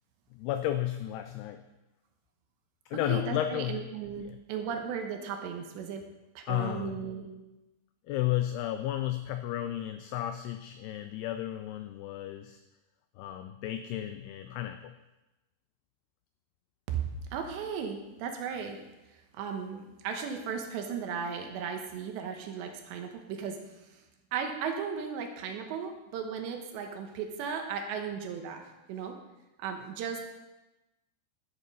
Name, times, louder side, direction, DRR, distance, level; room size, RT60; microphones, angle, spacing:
voice 1, 0.3-1.6 2.9-3.8 4.2-4.4 6.5-7.0 8.1-12.6 13.2-14.9, left 13 dB, 90° left, 9 dB, 2.2 m, -33 dB
voice 2, 2.9-6.0 6.4-7.3 16.9-17.0 17.3-18.8 19.3-24.0 24.3-28.6 28.9-29.2 29.6-30.2, right 6 dB, 80° right, 4 dB, 3.3 m, -36 dB
12.5 x 7.8 x 5.5 m, 1.0 s
omnidirectional pair, 5.2 m